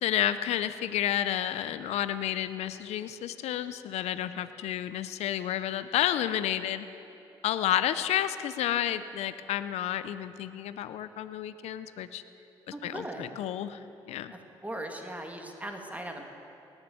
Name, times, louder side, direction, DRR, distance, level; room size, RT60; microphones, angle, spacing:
voice 1, 0.0-6.9 7.4-12.2 12.8-13.8 14.1-14.3, left 11 dB, 80° left, 13 dB, 0.5 m, -30 dB
voice 2, 4.1-4.5 12.7-13.3 14.6-16.2, right 1 dB, 15° right, 3 dB, 2.0 m, -39 dB
19.0 x 7.2 x 7.9 m, 2.9 s
supercardioid pair, 50°, 11 cm